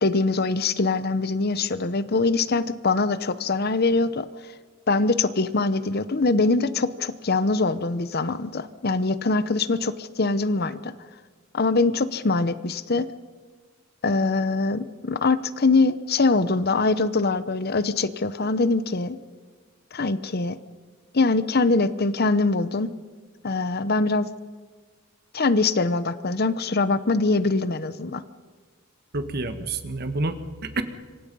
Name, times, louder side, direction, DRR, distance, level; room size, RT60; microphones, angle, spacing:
voice 1, 0.0-4.3 4.9-10.9 11.5-13.1 14.0-19.2 19.9-20.6 21.1-22.9 23.4-24.3 25.3-28.2, left 3 dB, 45° left, 14 dB, 0.8 m, -23 dB
voice 2, 29.1-30.8, right 2 dB, 45° right, 9 dB, 1.6 m, -28 dB
26.0 x 24.0 x 5.5 m, 1.5 s
head